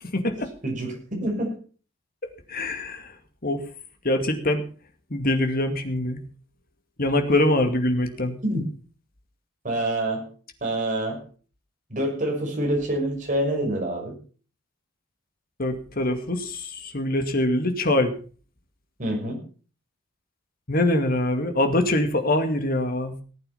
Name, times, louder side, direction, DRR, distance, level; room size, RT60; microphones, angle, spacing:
voice 1, 0.1-0.5 2.5-3.1 3.4-3.6 4.0-4.6 5.1-6.2 7.0-8.4 15.6-18.1 20.7-23.2, left 1 dB, 45° left, 6 dB, 2.3 m, -24 dB
voice 2, 1.2-1.5 8.4-8.6 9.6-10.3 10.6-11.2 11.9-14.2 19.0-19.4, right 1 dB, 40° right, 0 dB, 6.4 m, -26 dB
18.5 x 8.8 x 5.7 m, 0.40 s
head